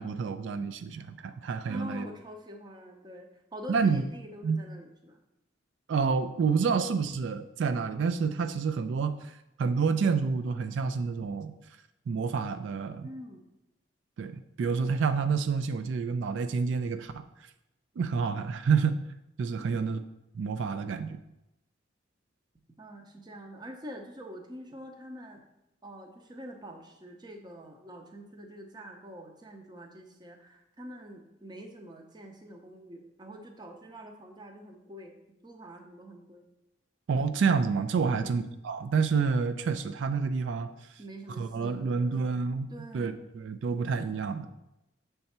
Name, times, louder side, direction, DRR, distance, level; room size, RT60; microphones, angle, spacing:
voice 1, 0.0-2.1 3.7-4.0 4.4-4.6 5.9-11.5 12.1-13.1 14.2-17.5 18.0-19.0 19.4-20.0 20.3-21.2 37.1-41.0 41.4-44.5, right 5 dB, 80° right, 10 dB, 0.3 m, -29 dB
voice 2, 1.7-5.2 13.0-13.4 19.6-19.9 22.8-25.4 25.8-36.5 38.0-38.4 41.0-42.1 42.7-43.2, equal, 20° right, 3 dB, 0.6 m, -45 dB
6.6 x 3.4 x 4.2 m, 0.90 s
head